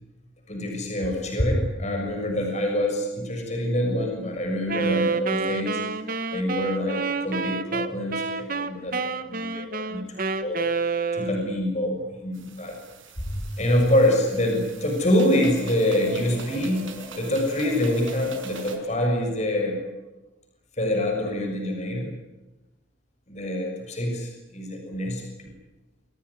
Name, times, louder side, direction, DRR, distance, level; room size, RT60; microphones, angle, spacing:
voice 1, 0.5-5.8 6.3-9.0 9.3-10.6 11.1-12.8 13.3-16.9 17.2-19.8 20.8-22.1 23.3-25.5, left 1 dB, 35° left, 2 dB, 6.5 m, -25 dB
Wind instrument woodwind instrument, 4.7-11.6, right 4 dB, 45° right, 1.3 m, -28 dB
sound 1, 12.3-18.8, right 2 dB, 80° right, 5.7 m, -41 dB
26.5 x 18.5 x 9.8 m, 1.0 s
head